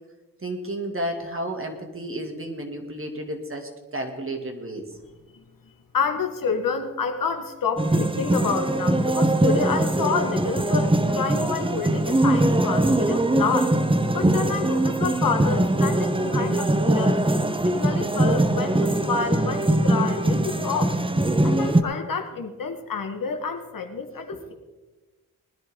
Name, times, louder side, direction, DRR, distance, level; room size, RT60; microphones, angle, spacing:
voice 1, 0.4-4.9 19.2-19.3 24.3-24.4, right 1 dB, 40° right, 3 dB, 2.5 m, -32 dB
voice 2, 5.9-13.7 14.1-17.2 17.6-21.0 21.4-24.5, left 5 dB, 70° left, 5 dB, 1.6 m, -28 dB
sound 1, 7.8-21.8, right 1 dB, 15° right, 1.0 m, -22 dB
20.0 x 10.5 x 3.8 m, 1.2 s
cardioid pair, 55°, 34 cm